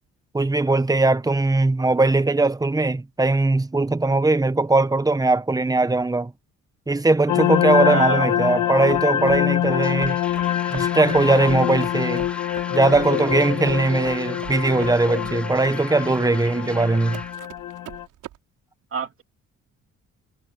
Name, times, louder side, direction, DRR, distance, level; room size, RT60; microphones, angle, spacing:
voice 1, 0.3-6.3 6.9-10.2 10.7-12.3 12.7-17.2, right 2 dB, 10° right, 1.2 m, -20 dB
sound 1, 7.3-18.1, left 11 dB, 80° left, 2.2 m, -25 dB
voice 2, 7.8-8.4 18.9-19.2, right 6 dB, 45° right, 2.9 m, -27 dB
sound 2, 8.9-18.4, right 14 dB, 90° right, 4.3 m, -41 dB
sound 3, 9.7-17.3, left 1 dB, 5° left, 4.9 m, -40 dB
cardioid pair, 90°, 30 cm